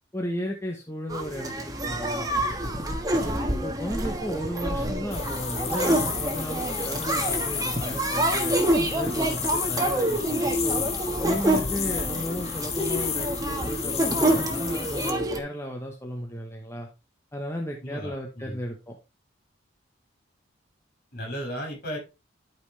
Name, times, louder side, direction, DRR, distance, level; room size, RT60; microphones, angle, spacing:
voice 1, 0.1-1.5 1.8-3.0 3.5-8.6 8.9-10.8 11.2-16.9 17.3-19.0, equal, 15° left, 1.0 m, -34 dB
sound 1, 1.1-15.4, right 1 dB, 20° right, 1.3 m, -27 dB
sound 2, 5.1-15.1, left 7 dB, 35° left, 1.3 m, -32 dB
voice 2, 17.8-18.6 21.1-22.0, equal, 50° left, 6.0 m, -35 dB
12.0 x 5.5 x 3.2 m
head